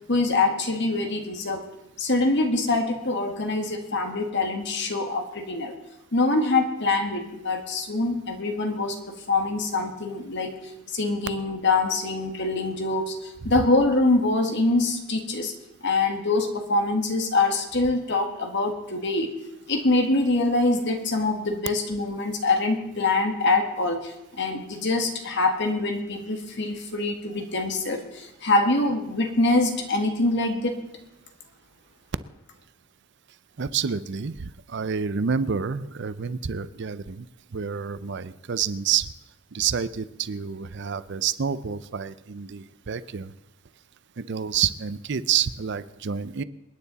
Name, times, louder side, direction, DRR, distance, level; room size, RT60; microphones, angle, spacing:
voice 1, 0.1-1.7 2.0-5.7 6.1-10.6 10.9-15.5 15.8-19.3 19.7-30.8, left 2 dB, 55° left, 5 dB, 1.9 m, -24 dB
voice 2, 33.6-37.3 37.5-39.1 39.5-43.3 44.2-46.4, right 7 dB, 55° right, 15 dB, 0.5 m, -28 dB
27.5 x 9.5 x 4.1 m, 0.91 s
head